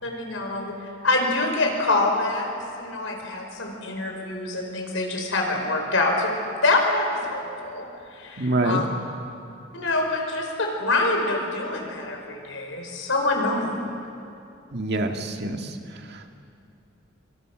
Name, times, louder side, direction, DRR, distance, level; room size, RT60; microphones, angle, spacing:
voice 1, 0.0-2.5 2.8-8.8 9.7-13.8, left 2 dB, 85° left, 2 dB, 5.1 m, -25 dB
voice 2, 8.4-8.8 14.7-16.2, right 2 dB, 55° right, 4 dB, 1.9 m, -26 dB
26.5 x 25.0 x 6.3 m, 2.6 s
head